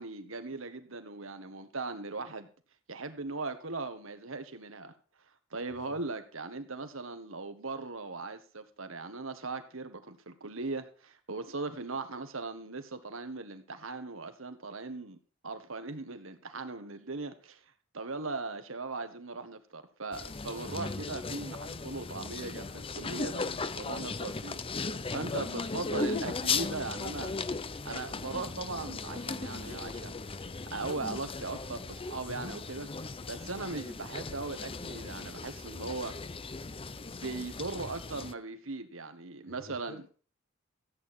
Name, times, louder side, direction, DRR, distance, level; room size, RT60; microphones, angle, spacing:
voice 1, 0.0-2.5 2.9-4.9 5.5-15.2 15.4-17.6 17.9-27.4 27.8-30.2 30.7-32.9 33.3-36.2 37.1-40.0, right 3 dB, 75° right, 1.6 m, -39 dB
sound 1, 20.1-38.3, left 4 dB, 25° left, 0.6 m, -37 dB
voice 2, 39.5-40.1, left 1 dB, 45° left, 6.1 m, -51 dB
14.5 x 8.9 x 4.4 m
head